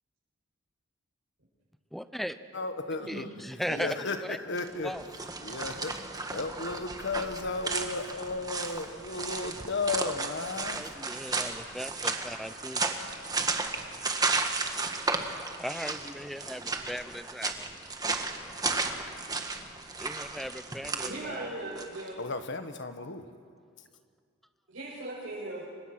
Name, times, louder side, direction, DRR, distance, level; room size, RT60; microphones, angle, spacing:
voice 1, 1.9-2.4 3.1-3.9 4.3-4.4 4.8-5.0 10.6-12.8 15.6-17.7 20.0-21.5, equal, ahead, 11 dB, 0.7 m, -38 dB
voice 2, 2.5-3.3 3.7-4.9 5.4-6.0 6.3-10.9 22.2-23.3, left 3 dB, 60° left, 8 dB, 1.6 m, -34 dB
sound 1, 4.5-22.1, right 3 dB, 20° right, 1.6 m, -34 dB
voice 3, 21.0-22.2 24.7-25.6, right 2 dB, 75° right, -10 dB, 7.3 m, -38 dB
29.5 x 25.0 x 6.2 m, 2.2 s
head